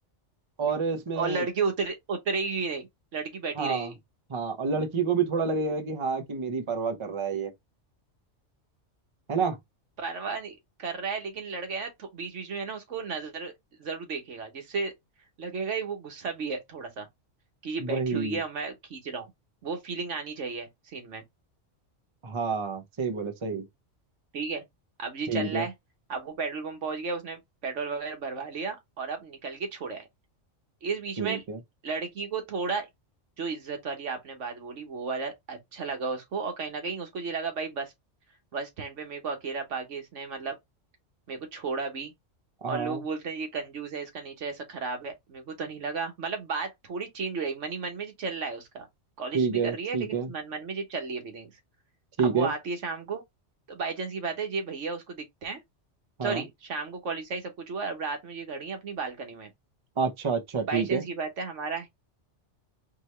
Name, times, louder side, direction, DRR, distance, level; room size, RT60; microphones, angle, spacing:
voice 1, 0.6-1.4 3.6-3.9 4.3-7.5 9.3-9.6 17.8-18.4 22.2-23.6 25.3-25.6 31.2-31.6 42.6-43.0 49.3-50.3 52.2-52.5 56.2-56.4 60.0-61.0, right 5 dB, 30° right, 0.7 m, -28 dB
voice 2, 1.1-3.9 10.0-13.5 13.8-14.9 15.4-17.1 17.6-19.3 19.6-21.2 24.3-24.6 25.0-25.7 26.1-30.1 30.8-31.4 31.8-32.9 33.4-37.9 38.5-40.5 41.3-42.1 42.7-48.9 49.2-51.5 52.2-53.2 53.7-55.6 56.2-59.5 60.7-61.9, right 4 dB, 80° right, 1.5 m, -33 dB
4.5 x 2.9 x 3.2 m
omnidirectional pair, 1.2 m